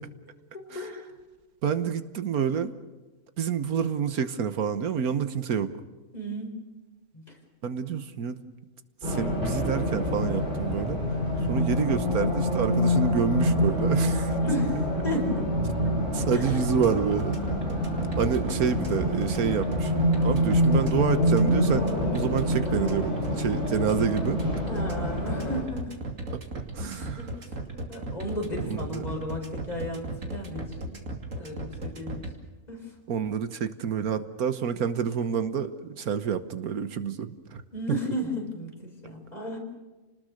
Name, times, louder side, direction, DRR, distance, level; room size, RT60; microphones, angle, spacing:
voice 1, 0.5-1.1 6.1-6.7 7.1-7.4 11.3-11.6 14.4-15.5 15.8-15.9 16.3-16.6 24.7-26.0 26.8-31.0 31.4-32.3 32.7-32.9 37.7-39.6, equal, 25° left, 1 dB, 5.0 m, -34 dB
voice 2, 1.6-2.7 3.4-5.7 7.6-8.4 9.0-11.0 11.5-14.4 16.1-17.4 18.2-19.9 20.2-24.6 26.7-27.3 28.7-29.0 33.1-37.6, right 7 dB, 80° right, 11 dB, 1.6 m, -28 dB
Race car auto racing, 9.0-25.6, equal, 35° right, 7.8 m, -26 dB
sound 1, 16.2-32.3, right 1 dB, 60° right, 2.8 m, -35 dB
29.5 x 20.0 x 6.5 m, 1.2 s
omnidirectional pair, 1.5 m